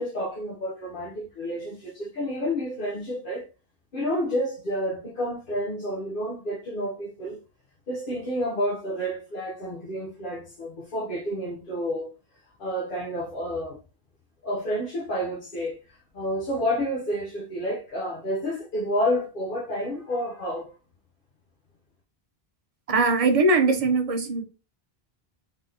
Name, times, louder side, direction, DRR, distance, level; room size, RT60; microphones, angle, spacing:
voice 1, 0.0-3.4 3.9-7.4 7.9-12.1 12.6-13.8 14.4-20.7, equal, 55° left, 1.0 m, -30 dB
voice 2, 22.9-24.4, right 3 dB, 40° right, 0.6 m, -21 dB
3.8 x 3.4 x 2.7 m
omnidirectional pair, 1.1 m